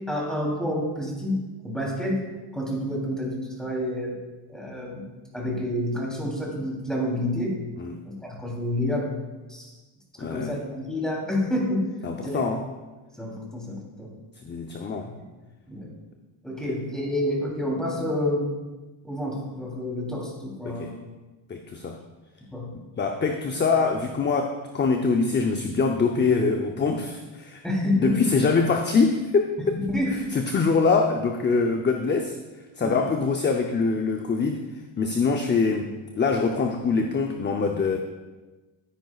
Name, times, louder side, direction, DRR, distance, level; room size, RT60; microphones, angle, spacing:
voice 1, 0.1-2.2 2.5-4.2 4.5-5.0 5.3-7.6 8.0-9.1 9.5-9.7 10.2-11.9 12.2-12.4 13.2-14.1 15.0-15.2 15.7-15.9 16.4-18.5 19.0-20.9 22.5-22.7 27.6-28.2 29.6-30.2 32.8-33.0, left 1 dB, ahead, -3 dB, 3.3 m, -28 dB
voice 2, 10.2-10.6 12.0-12.6 14.4-15.1 20.7-20.9 21.5-22.0 23.0-27.6 28.0-29.8 30.1-32.3 32.8-34.6 35.0-38.0, left 4 dB, 25° left, 4 dB, 0.6 m, -24 dB
13.5 x 9.8 x 2.4 m, 1.2 s
cardioid pair, 115°, 48 cm